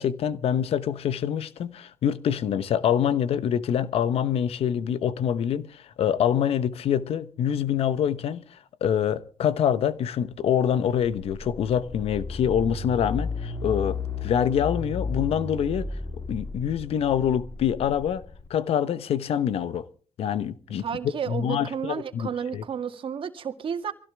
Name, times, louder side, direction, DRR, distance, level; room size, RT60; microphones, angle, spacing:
voice 1, 0.0-15.9 16.3-18.2 18.5-19.9 20.2-20.8 21.3-22.6, left 9 dB, 70° left, 1.0 m, -25 dB
sound 1, 11.1-18.5, left 4 dB, 30° left, 3.6 m, -34 dB
voice 2, 20.8-23.9, right 7 dB, 55° right, 2.0 m, -32 dB
24.0 x 16.0 x 3.5 m
supercardioid pair, 65°, 10 cm